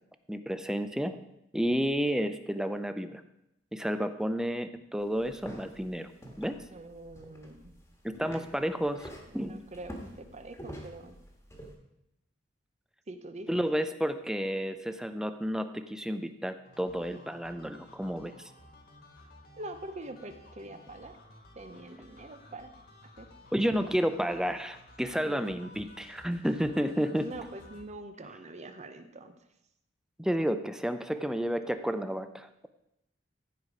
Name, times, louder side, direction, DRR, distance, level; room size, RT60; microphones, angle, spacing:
voice 1, 0.3-1.2 1.5-3.2 3.7-6.1 6.4-6.6 8.0-9.1 9.3-9.6 13.5-18.3 23.5-27.3 30.2-32.5, equal, 5° right, 10 dB, 0.5 m, -31 dB
sound 1, 5.0-11.7, equal, 15° left, 1.5 m, -48 dB
voice 2, 6.7-7.8 8.2-8.4 9.3-11.2 13.1-13.5 19.6-21.2 21.6-22.7 23.2-23.3 25.2-25.5 27.1-29.3, right 2 dB, 40° right, 9 dB, 0.8 m, -44 dB
sound 2, 16.6-27.9, left 1 dB, 55° left, 1.7 m, -54 dB
14.5 x 4.9 x 4.9 m, 0.84 s
head